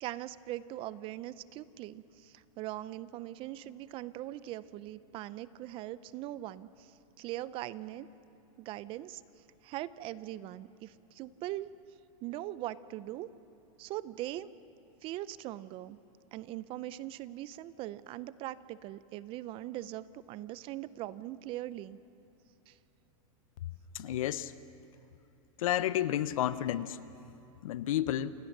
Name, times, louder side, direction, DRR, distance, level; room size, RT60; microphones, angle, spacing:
voice 1, 0.0-6.9 7.2-8.1 8.6-9.2 9.6-11.7 12.2-13.3 13.8-14.5 15.0-16.0 16.3-22.0 22.7-22.8, right 14 dB, 30° right, 17 dB, 0.5 m, -41 dB
voice 2, 23.9-24.5 25.6-27.0 27.6-28.3, left 12 dB, 75° left, 15 dB, 0.8 m, -31 dB
28.0 x 16.5 x 6.6 m, 2.9 s
supercardioid pair, 145°, 18 cm